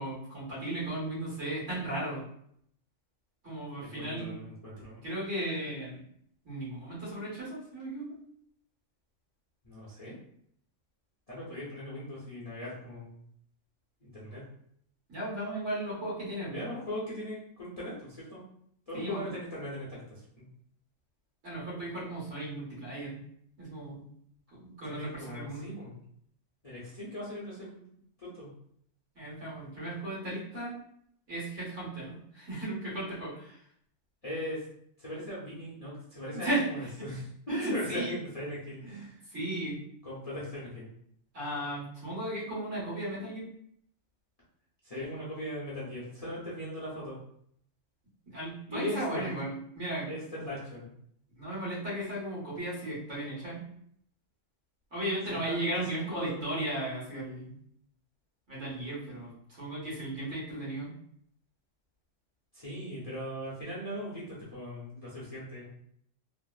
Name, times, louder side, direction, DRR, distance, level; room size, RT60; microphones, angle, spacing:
voice 1, 0.0-2.2 3.4-4.4 5.0-6.0 6.5-8.2 15.1-16.7 18.9-19.2 21.4-23.2 23.6-24.0 24.6-25.7 29.2-30.7 31.3-33.6 36.3-36.6 37.0-37.1 37.5-38.2 38.9-39.8 41.3-43.4 48.3-50.1 51.4-53.6 54.9-57.5 58.5-60.9, right 1 dB, 70° right, -6 dB, 1.7 m, -35 dB
voice 2, 3.7-5.0 9.6-10.1 11.3-13.2 14.0-14.4 16.5-18.4 18.9-20.0 20.4-20.5 24.8-26.0 26.6-27.9 28.2-28.5 34.2-34.6 35.0-37.3 37.7-39.1 40.0-40.9 44.8-47.2 48.7-49.3 50.1-50.9 55.4-56.4 62.5-65.7, equal, 35° left, -8 dB, 0.7 m, -39 dB
3.5 x 2.0 x 2.3 m, 0.67 s
omnidirectional pair, 1.4 m